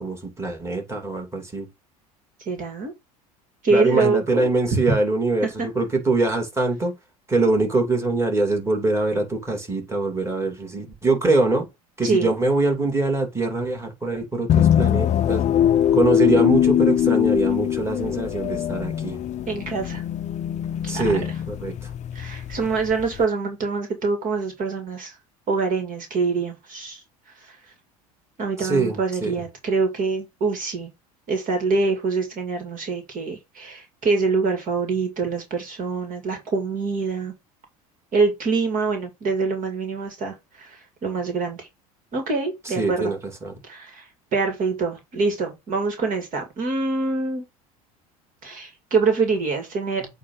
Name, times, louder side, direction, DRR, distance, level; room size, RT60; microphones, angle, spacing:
voice 1, 0.0-1.7 3.7-6.9 7.3-11.7 12.0-15.4 15.9-19.2 20.9-21.9 28.6-29.4 42.6-43.5, right 2 dB, 15° right, 2.9 m, -23 dB
voice 2, 2.5-2.9 3.6-5.0 5.4-5.7 12.0-12.3 19.5-20.0 20.9-21.0 22.1-25.1 25.5-27.0 28.4-30.9 31.3-37.3 38.1-41.7 42.1-43.1 43.7-44.1 44.3-47.4 48.4-50.1, right 4 dB, 45° right, 2.3 m, -25 dB
sound 1, 14.5-23.2, left 10 dB, 40° left, 0.6 m, -22 dB
8.4 x 2.8 x 5.6 m
hypercardioid pair, 80°, 19 cm